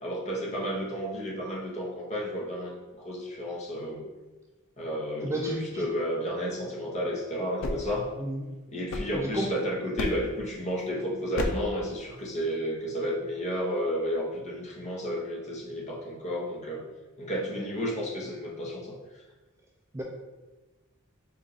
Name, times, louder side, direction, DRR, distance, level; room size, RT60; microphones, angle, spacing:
voice 1, 0.0-4.1 4.8-8.1 8.7-16.8 17.2-19.0, equal, 35° left, -3 dB, 0.9 m, -32 dB
voice 2, 5.2-5.6 8.2-8.4 9.1-9.5 19.9-20.0, right 1 dB, 15° right, -1 dB, 0.3 m, -31 dB
sound 1, 7.3-9.5 10.0-10.5 11.3-11.8, left 1 dB, 65° left, 0.5 m, -35 dB
4.3 x 2.5 x 3.9 m, 1.2 s
head